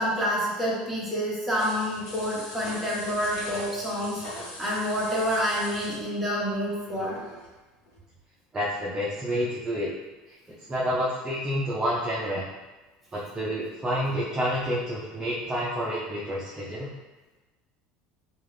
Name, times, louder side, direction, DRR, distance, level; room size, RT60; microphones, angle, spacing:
voice 1, 0.0-7.2, equal, ahead, -7 dB, 1.0 m, -28 dB
sound 1, 1.5-7.5 7.9-8.0, left 1 dB, 55° left, 1.1 m, -41 dB
voice 2, 8.5-9.9 10.7-12.4 13.1-16.9, equal, 20° right, -7 dB, 0.5 m, -29 dB
2.4 x 2.4 x 3.2 m, 1.2 s
supercardioid pair, 125°, 3 cm